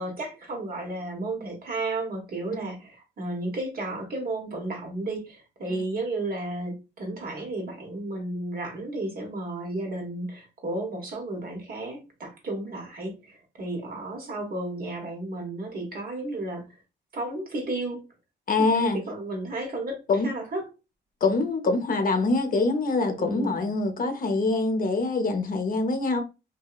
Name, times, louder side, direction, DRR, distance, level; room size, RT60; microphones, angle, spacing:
voice 1, 0.0-16.7 17.1-18.0 18.6-20.7 23.2-23.6, right 2 dB, 50° right, 1.2 m, -33 dB
voice 2, 18.5-19.0 20.1-20.3 21.2-26.2, left 3 dB, 45° left, 0.7 m, -24 dB
2.7 x 2.7 x 2.3 m
cardioid pair, 90°, 20 cm